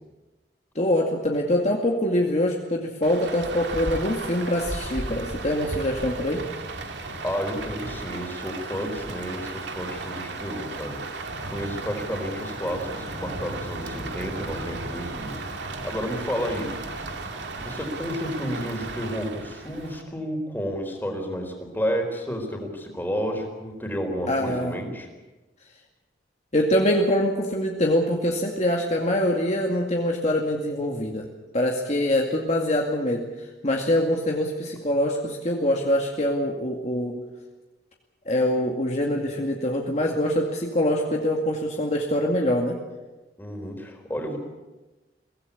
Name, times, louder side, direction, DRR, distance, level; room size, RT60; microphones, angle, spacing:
voice 1, 0.8-6.4 24.3-24.7 26.5-31.3 31.5-33.3 33.6-37.2 38.3-42.8, left 1 dB, 40° left, 0 dB, 2.2 m, -24 dB
Rain, 3.0-20.0, right 2 dB, 80° right, 2.5 m, -35 dB
voice 2, 7.0-17.0 17.6-25.1 43.4-44.4, equal, 10° left, 2 dB, 4.2 m, -31 dB
23.0 x 17.5 x 8.7 m, 1.2 s
head